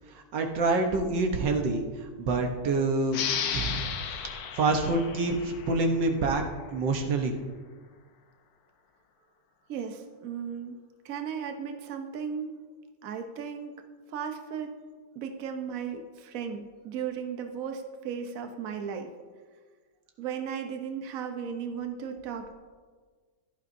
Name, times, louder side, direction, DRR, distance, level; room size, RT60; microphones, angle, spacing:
voice 1, 0.3-1.8 2.2-3.2 3.5-3.9 4.6-6.4 6.7-7.3, right 3 dB, 85° right, 4 dB, 1.8 m, -26 dB
sound 1, 3.1-6.4, left 7 dB, 80° left, 1.5 m, -34 dB
voice 2, 9.7-10.8 11.0-12.6 13.0-13.7 14.1-14.7 15.1-19.1 20.2-22.5, right 7 dB, 55° right, 5 dB, 1.2 m, -35 dB
16.0 x 11.5 x 2.7 m, 1.5 s
omnidirectional pair, 1.9 m